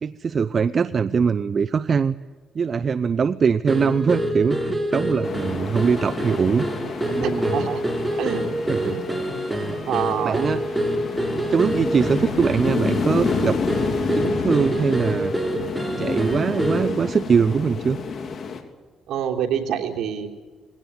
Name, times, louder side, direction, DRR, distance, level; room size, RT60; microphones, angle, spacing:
voice 1, 0.0-2.2 2.5-6.7 7.1-7.7 8.7-9.0 10.2-10.7 11.5-13.6 14.1-15.3 16.0-18.0, right 6 dB, 45° right, 12 dB, 0.6 m, -22 dB
sound 1, 3.7-17.0, right 1 dB, 5° right, 3.5 m, -27 dB
sound 2, 5.2-18.6, left 5 dB, 55° left, 3.1 m, -30 dB
voice 2, 7.2-7.8 8.2-9.0 9.5-10.5 19.1-20.3, right 8 dB, 75° right, 1 dB, 3.3 m, -27 dB
20.0 x 17.5 x 9.4 m, 1.4 s
cardioid pair, 90°, 0 cm